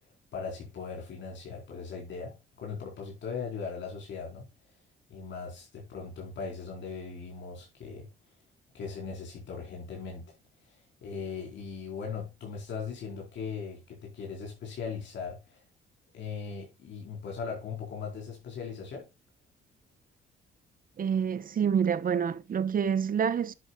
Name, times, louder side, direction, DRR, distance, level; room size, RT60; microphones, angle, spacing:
voice 1, 0.3-4.5 5.1-8.1 8.7-10.3 10.7-15.6 16.1-19.1, left 5 dB, 65° left, 4.2 m, -39 dB
voice 2, 21.0-23.5, right 7 dB, 45° right, 1.0 m, -27 dB
10.5 x 8.0 x 2.3 m
cardioid pair, 90°, 20 cm